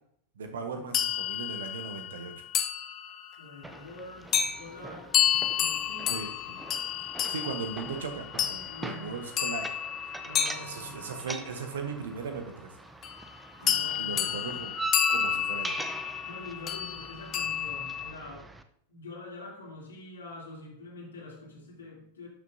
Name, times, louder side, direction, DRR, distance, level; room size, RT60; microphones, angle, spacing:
voice 1, 0.4-2.4 6.1-6.6 7.2-9.7 10.5-12.7 13.6-14.8 15.1-15.8, right 5 dB, 60° right, 5 dB, 1.2 m, -38 dB
sound 1, 0.9-3.4 4.3-4.6 5.1-11.5 13.0-13.3 13.7-18.1, left 9 dB, 30° left, 0.7 m, -30 dB
voice 2, 3.4-4.3 4.6-5.1 5.5-6.1 8.7-9.1 10.2-11.0 13.6-14.3 16.2-18.5 18.9-22.3, left 2 dB, 70° left, -4 dB, 2.8 m, -45 dB
sound 2, 3.6-18.6, right 3 dB, 10° right, 0.6 m, -42 dB
11.5 x 6.8 x 2.8 m, 0.67 s
figure-of-eight pair, 90°, 0 cm